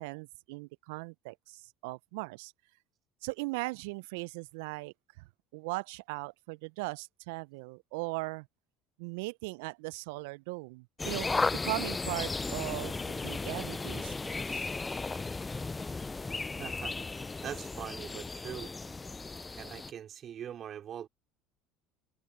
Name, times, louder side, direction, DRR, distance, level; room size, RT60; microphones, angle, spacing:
voice 1, 0.0-2.5 3.2-4.9 5.5-8.5 9.0-11.3 11.5-14.1 14.5-14.7, right 26 dB, 70° right, 0.7 m, -38 dB
sound 1, 11.0-19.9, left 3 dB, 20° left, 0.7 m, -35 dB
voice 2, 16.6-16.9 17.4-18.7 19.6-21.1, right 9 dB, 45° right, 4.7 m, -42 dB
hypercardioid pair, 65°, 0 cm